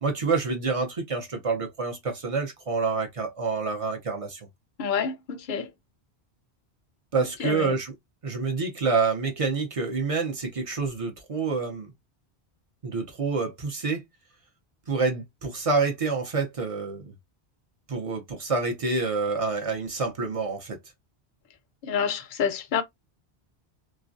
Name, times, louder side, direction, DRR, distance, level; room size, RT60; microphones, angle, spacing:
voice 1, 0.0-4.4 7.1-7.9 8.2-11.9 12.8-14.0 14.9-17.1 17.9-20.8, right 4 dB, 40° right, 0.6 m, -27 dB
voice 2, 4.8-5.7 7.4-7.8 21.8-22.8, left 7 dB, 60° left, 0.6 m, -28 dB
2.3 x 2.1 x 2.5 m
omnidirectional pair, 1.1 m